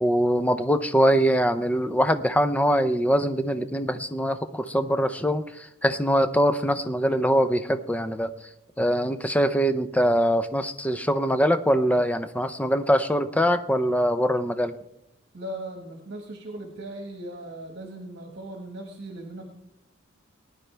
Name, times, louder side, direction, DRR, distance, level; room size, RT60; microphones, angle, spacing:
voice 1, 0.0-8.3 8.8-14.7, equal, 5° left, 10 dB, 0.5 m, -23 dB
voice 2, 15.3-19.5, right 1 dB, 55° right, 3 dB, 1.5 m, -38 dB
19.5 x 10.5 x 3.3 m, 0.79 s
head